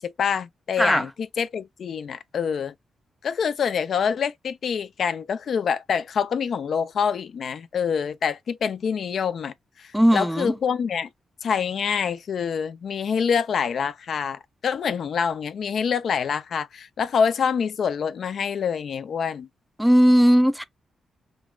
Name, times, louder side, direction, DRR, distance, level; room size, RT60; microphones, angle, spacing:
voice 1, 0.0-2.7 3.2-11.1 11.4-19.5, left 6 dB, 65° left, 0.4 m, -26 dB
voice 2, 9.9-10.5 19.8-20.6, equal, 5° right, 0.4 m, -17 dB
3.8 x 2.4 x 2.2 m
cardioid pair, 85°, 0 cm